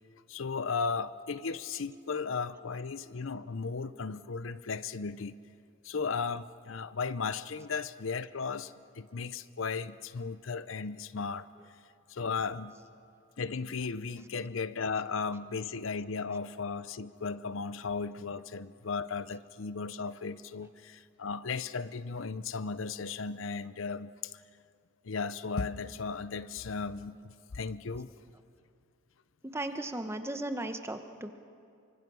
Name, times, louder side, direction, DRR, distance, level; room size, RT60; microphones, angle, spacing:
voice 1, 0.3-5.4 5.8-11.5 12.1-12.7 13.4-24.4 25.0-28.1, left 5 dB, 75° left, 15 dB, 0.7 m, -36 dB
voice 2, 29.4-31.3, right 1 dB, 15° right, 7 dB, 1.1 m, -36 dB
27.5 x 24.5 x 6.3 m, 2.4 s
head